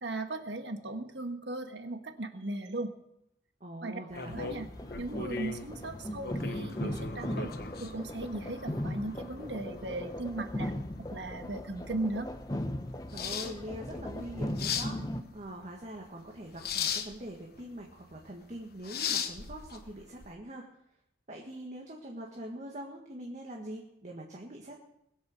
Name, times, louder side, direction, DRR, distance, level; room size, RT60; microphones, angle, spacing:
voice 1, 0.0-2.9 3.8-4.0 4.3-4.7 5.0-7.5 7.8-10.7 11.1-12.3, right 2 dB, 70° right, 6 dB, 1.6 m, -37 dB
voice 2, 3.6-4.5 13.1-15.0 15.3-20.7 21.3-24.8, right 1 dB, 40° right, 0 dB, 1.8 m, -43 dB
sound 1, 4.1-20.3, left 6 dB, 60° left, 1.1 m, -39 dB
sound 2, 4.3-15.2, left 1 dB, 20° left, 0.8 m, -38 dB
21.0 x 8.0 x 6.7 m, 0.79 s
head